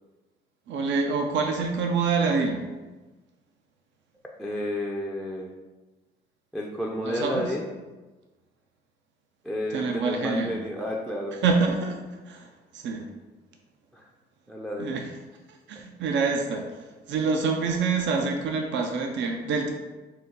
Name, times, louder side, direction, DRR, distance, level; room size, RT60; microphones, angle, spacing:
voice 1, 0.7-2.7 7.0-7.5 9.7-10.5 11.4-12.0 12.3-12.5 12.7-13.1 14.8-15.1 15.7-16.6 17.1-19.7, right 4 dB, 70° right, 3 dB, 0.5 m, -26 dB
voice 2, 4.4-5.5 6.5-7.7 9.4-11.4 13.9-14.0 14.5-15.0, left 1 dB, ahead, -2 dB, 0.4 m, -31 dB
3.9 x 2.2 x 3.9 m, 1.2 s
cardioid pair, 90°, 20 cm